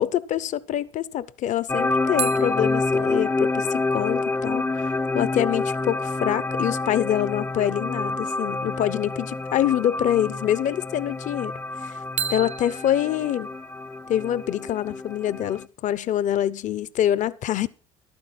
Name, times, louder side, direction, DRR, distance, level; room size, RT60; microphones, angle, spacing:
voice 1, 0.0-11.5 11.8-12.0 12.3-13.5 14.1-17.7, left 11 dB, 55° left, 0.9 m, -25 dB
sound 1, 1.7-15.7, left 3 dB, 15° left, 0.6 m, -28 dB
sound 2, 2.2-5.7 12.2-14.9, right 8 dB, 50° right, 0.6 m, -37 dB
13.5 x 12.0 x 4.2 m
hypercardioid pair, 65°, 15 cm